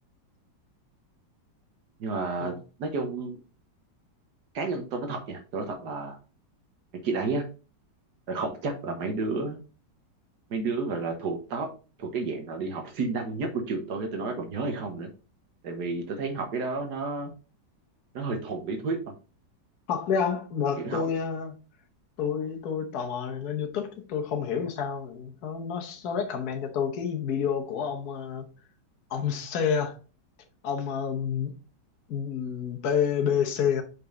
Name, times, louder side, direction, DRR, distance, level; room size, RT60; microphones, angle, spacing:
voice 1, 2.0-2.5 2.8-3.4 4.5-6.2 7.0-7.4 8.3-9.6 10.5-11.7 12.0-15.1 15.6-17.3 18.1-19.1 20.8-21.0, right 3 dB, 70° right, 1.6 m, -31 dB
voice 2, 19.9-21.6 22.2-28.5 29.1-30.0 30.6-31.5 32.1-33.8, left 7 dB, 60° left, 1.5 m, -29 dB
5.3 x 5.2 x 3.8 m
omnidirectional pair, 1.9 m